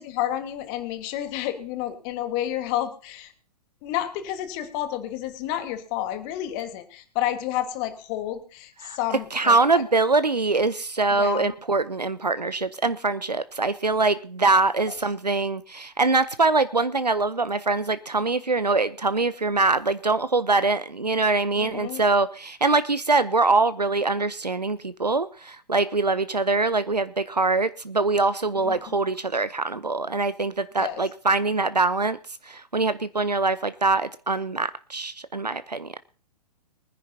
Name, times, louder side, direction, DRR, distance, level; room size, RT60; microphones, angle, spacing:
voice 1, 0.0-3.3 3.8-9.8 11.1-11.5 21.6-22.0 28.6-28.8 30.8-31.0, left 12 dB, 30° left, 1.5 m, -30 dB
voice 2, 9.3-32.2 32.4-36.0, right 3 dB, 90° right, 0.7 m, -23 dB
23.5 x 10.0 x 2.8 m
figure-of-eight pair, 115°, 21 cm